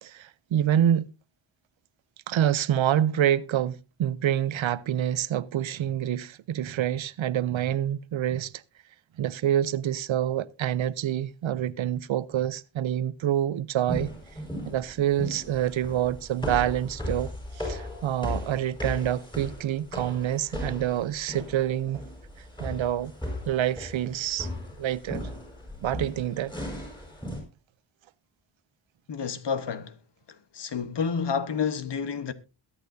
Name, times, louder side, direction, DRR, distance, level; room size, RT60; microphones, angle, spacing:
voice 1, 0.0-1.1 2.3-8.6 9.2-14.1 14.7-22.0 22.6-23.1 23.5-24.5 24.8-25.2 25.8-26.5, right 11 dB, 90° right, 0.7 m, -27 dB
sound 1, 13.9-27.4, left 1 dB, 10° left, 5.0 m, -37 dB
voice 2, 29.1-30.0 30.5-32.3, left 6 dB, 65° left, 1.2 m, -29 dB
22.0 x 8.6 x 2.7 m
wide cardioid pair, 105°, 45 cm